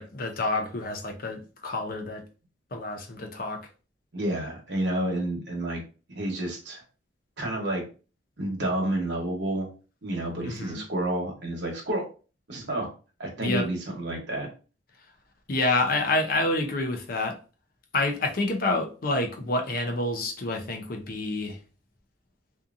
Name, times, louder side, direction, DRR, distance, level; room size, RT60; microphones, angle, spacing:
voice 1, 0.0-2.2 2.7-3.6 10.4-10.8 13.4-13.7 15.5-17.4 17.9-21.6, left 2 dB, 50° left, 0.5 m, -28 dB
voice 2, 4.1-5.8 6.1-6.8 7.4-7.9 8.4-9.7 10.0-12.1 12.5-12.9 13.2-14.5, right 1 dB, 70° right, 1.0 m, -30 dB
2.7 x 2.5 x 2.4 m
head